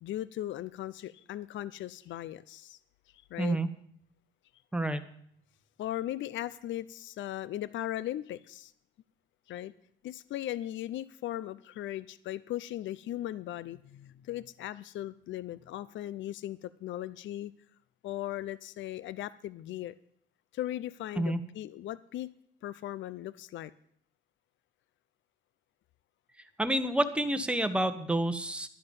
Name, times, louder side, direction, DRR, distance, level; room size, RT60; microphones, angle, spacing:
voice 1, 0.0-2.8 3.3-3.6 5.8-8.7 9.5-9.7 10.0-17.5 18.0-19.9 20.5-22.3 22.6-23.7, left 13 dB, 70° left, 18 dB, 0.5 m, -38 dB
voice 2, 3.4-3.7 4.7-5.0 21.2-21.4 26.6-28.7, right 1 dB, 5° right, 8 dB, 1.1 m, -28 dB
11.0 x 11.0 x 5.4 m, 0.67 s
cardioid pair, 90°, 20 cm